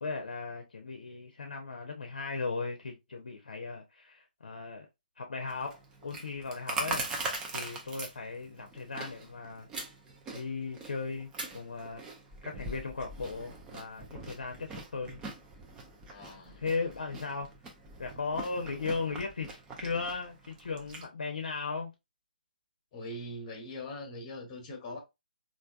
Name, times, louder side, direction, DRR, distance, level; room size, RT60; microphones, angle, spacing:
voice 1, 0.0-4.9 5.2-5.7 6.0-7.1 7.5-9.7 10.3-12.0 12.4-15.2 16.6-17.5 18.0-21.9, left 4 dB, 70° left, 0.6 m, -37 dB
Chewing mastication, 5.5-21.1, right 3 dB, 15° right, 0.6 m, -42 dB
sound 1, 6.0-6.4 6.6-6.7 7.2-7.7 9.7-10.6 11.3-12.5, right 2 dB, 70° right, 1.2 m, -46 dB
voice 2, 16.1-16.6 22.9-25.0, left 1 dB, 30° left, 1.1 m, -42 dB
3.3 x 2.5 x 2.4 m
figure-of-eight pair, 140°, 5 cm